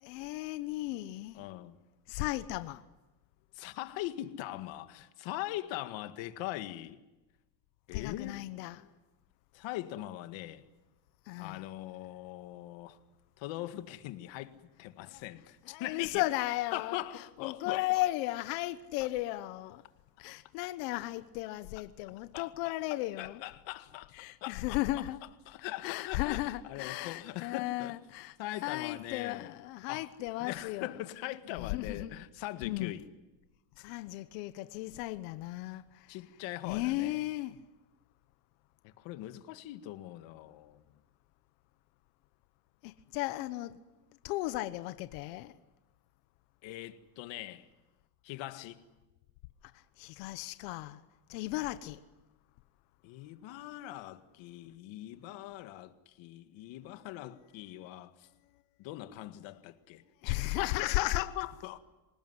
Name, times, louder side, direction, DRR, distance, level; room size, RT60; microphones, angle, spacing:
voice 1, 0.0-1.4 2.1-2.8 7.9-8.9 11.3-11.7 15.1-15.2 15.7-17.0 17.4-19.8 20.2-23.4 24.1-25.2 25.8-28.4 28.6-30.9 31.5-32.2 32.6-33.0 33.8-36.1 36.6-37.6 42.8-43.8 44.2-45.5 50.0-51.0 51.3-52.0 60.2-61.2, left 17 dB, 85° left, 1.2 m, -35 dB
voice 2, 1.3-1.8 3.5-7.0 7.9-8.4 9.5-10.6 11.4-13.0 13.4-16.2 16.7-17.9 22.3-22.7 23.2-24.1 24.4-25.0 25.5-28.0 28.4-29.5 29.9-30.1 30.4-33.1 36.1-37.3 38.8-40.9 46.6-47.7 48.2-48.8 51.5-51.6 53.0-58.3 58.8-61.8, left 15 dB, 65° left, 2.0 m, -41 dB
27.0 x 19.0 x 9.8 m
cardioid pair, 125°, 48 cm